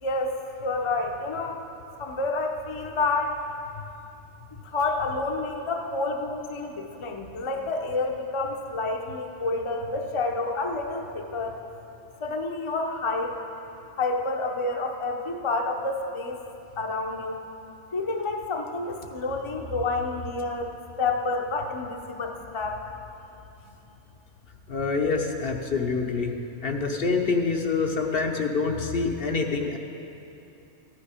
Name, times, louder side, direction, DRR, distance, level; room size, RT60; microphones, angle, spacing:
voice 1, 0.0-1.6 2.0-3.4 4.6-11.6 12.2-13.3 14.0-16.4 16.8-17.4 17.9-22.9, left 3 dB, 30° left, 3 dB, 0.7 m, -29 dB
voice 2, 24.7-26.3 26.6-29.8, left 4 dB, 55° left, 3 dB, 1.0 m, -26 dB
14.5 x 9.9 x 5.1 m, 2.8 s
omnidirectional pair, 1.2 m